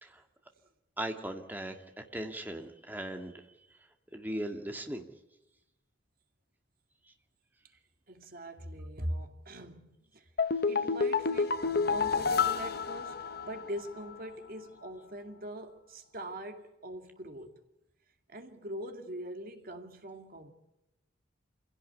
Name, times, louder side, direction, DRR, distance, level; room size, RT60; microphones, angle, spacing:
voice 1, 1.0-1.8 2.1-3.4 4.1-5.1, right 1 dB, 10° right, 2.1 m, -38 dB
voice 2, 8.1-10.3 10.7-17.6 18.3-20.5, equal, 50° right, 2.3 m, -42 dB
sound 1, 10.4-13.8 14.1-14.2, left 5 dB, 55° left, 0.9 m, -29 dB
26.5 x 16.5 x 8.7 m
head